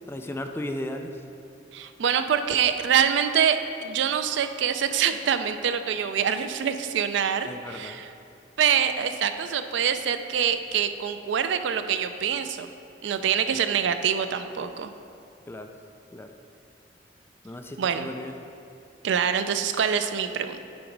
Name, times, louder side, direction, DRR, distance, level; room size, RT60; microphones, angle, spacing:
voice 1, 0.1-1.1 7.4-8.0 13.5-13.6 15.5-15.7 16.1-16.3 17.4-18.3, left 1 dB, 15° left, 5 dB, 0.3 m, -35 dB
voice 2, 1.7-8.1 8.6-12.7 13.0-14.9 17.8-18.1 19.0-20.6, right 8 dB, 70° right, 9 dB, 0.4 m, -25 dB
8.6 x 4.0 x 4.6 m, 2.5 s
head